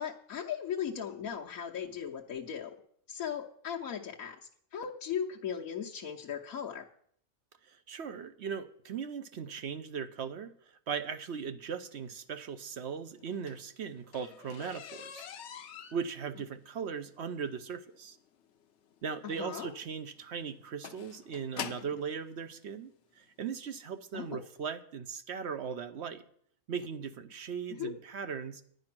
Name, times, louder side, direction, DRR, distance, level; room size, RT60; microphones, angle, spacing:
voice 1, 0.0-2.7 3.1-4.4 4.7-6.8 19.2-19.7 24.1-24.4 27.8-27.9, left 8 dB, 80° left, -2 dB, 1.3 m, -37 dB
voice 2, 7.7-10.5 10.9-15.3 15.9-18.2 19.0-22.9 23.2-26.2 26.7-28.6, right 6 dB, 60° right, 10 dB, 0.9 m, -38 dB
sound 1, 13.2-22.1 23.0-23.1 23.6-23.8 24.1-24.2 24.6-24.7, left 8 dB, 60° left, 0.9 m, -46 dB
10.5 x 9.6 x 5.9 m, 0.64 s
omnidirectional pair, 1.4 m